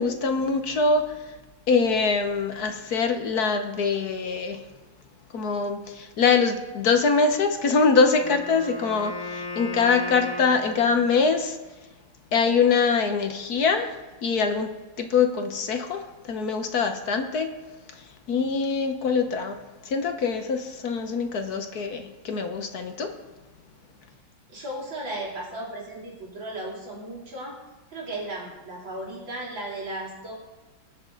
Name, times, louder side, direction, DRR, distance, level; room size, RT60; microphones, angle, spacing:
voice 1, 0.0-1.4 1.7-4.6 5.3-11.6 12.3-17.5 17.9-23.1, left 5 dB, 60° left, 6 dB, 1.4 m, -24 dB
Wind instrument woodwind instrument, 8.1-11.4, left 3 dB, 90° left, 2.8 m, -36 dB
voice 2, 24.5-27.6 27.9-30.3, right 1 dB, 85° right, -3 dB, 4.2 m, -35 dB
20.5 x 7.4 x 3.9 m, 1.2 s
omnidirectional pair, 2.0 m